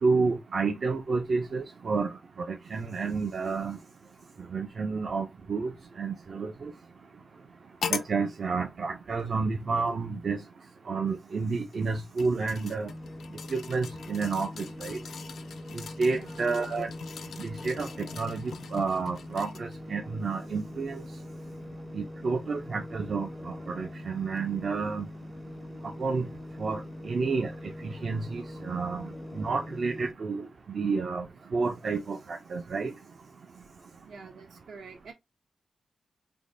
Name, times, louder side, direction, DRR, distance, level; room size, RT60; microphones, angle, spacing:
voice 1, 0.0-2.2 2.5-3.8 4.5-5.7 6.0-6.7 7.9-10.4 10.9-12.9 13.5-15.0 16.0-16.9 17.4-21.0 21.9-25.0 26.0-26.3 26.6-27.5 27.8-29.1 29.3-30.5 30.7-31.3 31.5-32.9, right 4 dB, 60° right, 0.5 m, -30 dB
sound 1, 7.8-8.2 9.2-9.3 11.7-19.8 20.3-20.4, left 6 dB, 85° left, 0.4 m, -41 dB
sound 2, 12.9-30.1, left 1 dB, 20° left, 0.4 m, -43 dB
voice 2, 16.1-16.4 34.1-35.1, right 5 dB, 85° right, 1.0 m, -47 dB
3.4 x 2.2 x 3.8 m
wide cardioid pair, 110°, 0 cm